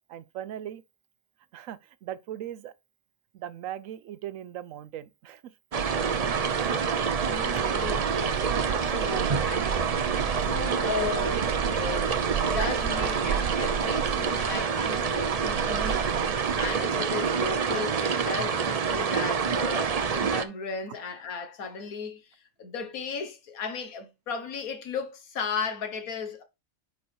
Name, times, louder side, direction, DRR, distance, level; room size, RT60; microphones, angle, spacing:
voice 1, 0.1-0.8 1.5-2.7 3.3-5.4 7.5-7.6 9.0-9.3, right 11 dB, 75° right, 0.9 m, -38 dB
sound 1, 5.7-20.4, right 6 dB, 55° right, 0.4 m, -26 dB
voice 2, 7.2-10.0 10.4-16.1 16.6-22.2 22.6-26.4, left 5 dB, 85° left, 1.6 m, -35 dB
5.2 x 4.6 x 4.3 m
omnidirectional pair, 1.5 m